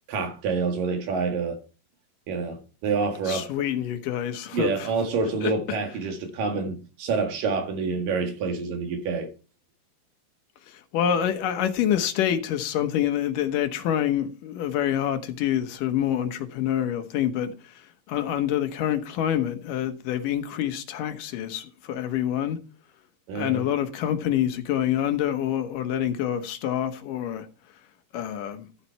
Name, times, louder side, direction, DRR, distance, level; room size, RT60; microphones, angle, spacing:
voice 1, 0.1-1.6 2.3-3.5 4.5-9.3 23.3-23.7, right 4 dB, 75° right, 3.5 m, -27 dB
voice 2, 3.3-4.9 5.4-5.8 10.7-22.6 23.4-27.5 28.1-28.7, left 10 dB, 75° left, 2.6 m, -27 dB
13.0 x 7.2 x 4.6 m
omnidirectional pair, 3.9 m